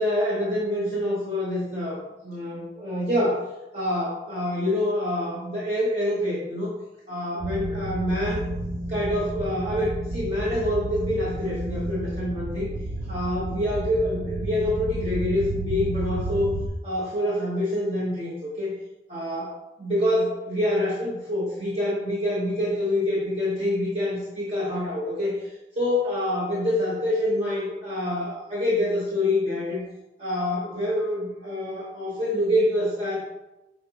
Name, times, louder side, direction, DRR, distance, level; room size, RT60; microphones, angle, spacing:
voice 1, 0.0-3.5 3.7-6.7 7.1-8.4 8.9-12.7 13.1-16.6 16.8-18.7 19.1-29.8 30.2-33.2, left 1 dB, 35° right, -7 dB, 1.3 m, -26 dB
sound 1, 7.4-16.7, right 2 dB, 55° right, 0.7 m, -31 dB
8.4 x 4.1 x 3.0 m, 0.97 s
head